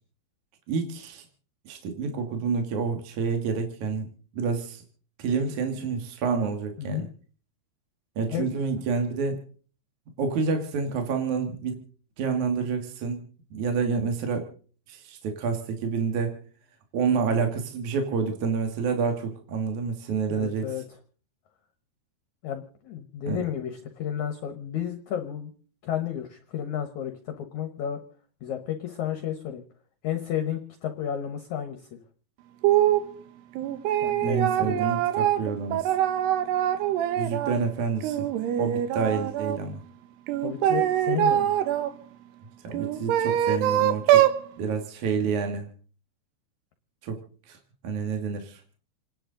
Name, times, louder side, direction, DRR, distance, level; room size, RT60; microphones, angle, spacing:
voice 1, 0.7-1.2 1.7-4.0 4.3-4.8 5.2-7.1 8.2-9.4 10.2-11.8 12.2-13.2 13.5-14.5 14.9-16.3 16.9-20.7 23.3-23.4 34.2-35.9 37.2-38.3 38.6-39.8 42.6-44.2 44.6-45.7 47.0-47.2 47.5-47.6 47.8-48.6, right 5 dB, 55° right, 5 dB, 2.5 m, -28 dB
voice 2, 20.3-20.8 22.4-25.5 25.8-28.0 28.4-29.6 30.0-32.0 34.0-35.0 40.4-41.5, left 10 dB, 65° left, 6 dB, 1.9 m, -32 dB
sound 1, 32.6-33.1 33.6-37.6 38.0-39.6 40.3-41.9 42.7-44.4, right 11 dB, 80° right, 3.1 m, -24 dB
28.5 x 11.0 x 3.8 m, 0.44 s
omnidirectional pair, 4.8 m